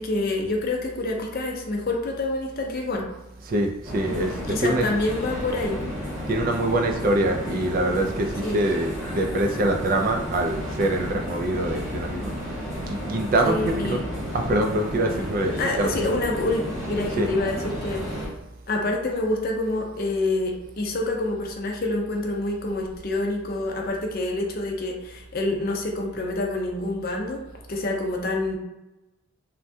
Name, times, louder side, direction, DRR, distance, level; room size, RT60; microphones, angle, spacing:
voice 1, 0.0-3.1 4.5-5.8 8.4-8.6 13.4-14.0 15.6-18.2 18.7-27.4 27.7-28.6, left 2 dB, 45° left, 1 dB, 0.5 m, -27 dB
voice 2, 3.4-4.9 6.3-12.6 12.9-14.0 14.3-16.1 17.2-17.3, right 1 dB, 40° right, 3 dB, 0.3 m, -24 dB
sound 1, 3.8-18.3, equal, 15° right, 1.0 m, -32 dB
3.3 x 2.2 x 2.6 m, 0.99 s
head